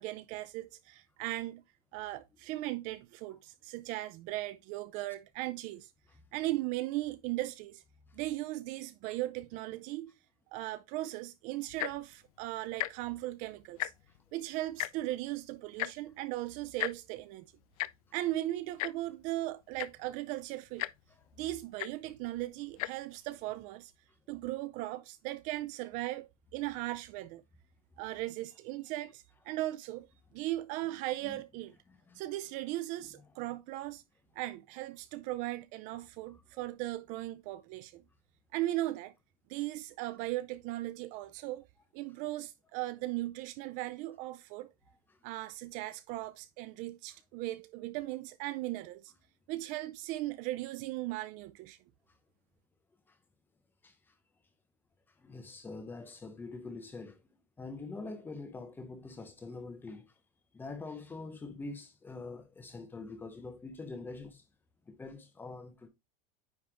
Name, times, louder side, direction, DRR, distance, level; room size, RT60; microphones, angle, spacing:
voice 1, 0.0-1.6 1.9-5.9 6.3-7.8 8.1-10.1 10.5-13.9 14.3-17.5 18.1-20.9 21.4-23.9 24.3-27.4 28.0-30.1 30.3-31.7 32.1-34.0 34.4-38.0 38.5-39.1 39.5-41.6 41.9-44.7 45.2-49.1 49.5-51.8, right 16 dB, 45° right, 0.4 m, -37 dB
Tick-tock, 11.7-12.1 12.7-12.9 13.2-13.3 13.6-14.2 14.8-14.9 15.8-15.9 16.8-16.9 17.8-17.9 18.8-18.9 19.5-19.6 19.8-20.1 20.8-20.9 21.8-21.9 22.7-22.9 23.6-23.7, left 18 dB, 85° left, 0.4 m, -34 dB
voice 2, 55.2-57.2 57.6-60.1 60.5-64.4 64.9-65.9, left 3 dB, 10° left, 1.0 m, -44 dB
9.5 x 3.4 x 3.6 m
supercardioid pair, 160°, 18 cm